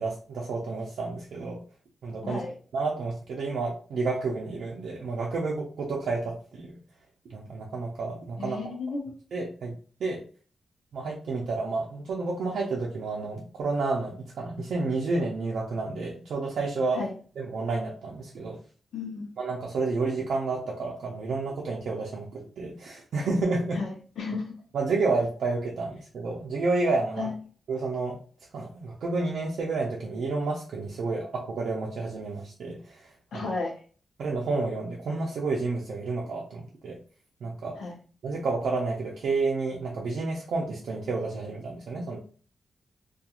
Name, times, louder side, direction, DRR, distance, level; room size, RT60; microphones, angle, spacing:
voice 1, 0.0-1.6 2.0-2.4 2.7-6.8 7.3-8.7 9.3-9.7 10.0-10.2 10.9-17.0 17.4-18.6 19.4-23.8 24.7-27.3 27.7-28.2 28.5-33.1 33.3-33.5 34.2-37.0 37.4-37.8 38.2-42.2, right 3 dB, 75° right, -3 dB, 0.5 m, -30 dB
voice 2, 2.2-2.5 8.4-9.1 16.9-17.1 18.9-19.3 23.7-24.5 27.2-27.3 33.3-33.7 37.8-37.9, left 4 dB, 80° left, 0 dB, 0.6 m, -33 dB
2.3 x 2.3 x 2.9 m, 0.40 s
wide cardioid pair, 175°, 0 cm